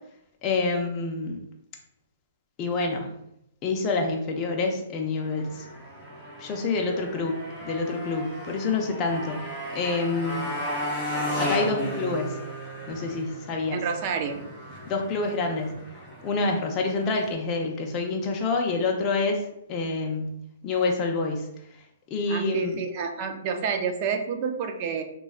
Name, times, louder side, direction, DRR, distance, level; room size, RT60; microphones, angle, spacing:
voice 1, 0.4-1.4 2.6-3.2 3.6-5.6 6.4-9.5 9.7-10.5 11.4-12.4 12.9-13.8 14.9-15.8 16.2-20.3 20.6-21.5 21.7-21.8 22.1-22.8, left 3 dB, 25° left, 1 dB, 0.4 m, -27 dB
Motorcycle, 5.2-17.3, equal, 10° right, 0.9 m, -35 dB
voice 2, 13.7-14.5 22.3-25.0, right 6 dB, 40° right, 6 dB, 0.4 m, -29 dB
3.0 x 2.2 x 2.3 m, 0.78 s
hypercardioid pair, 145°, 0 cm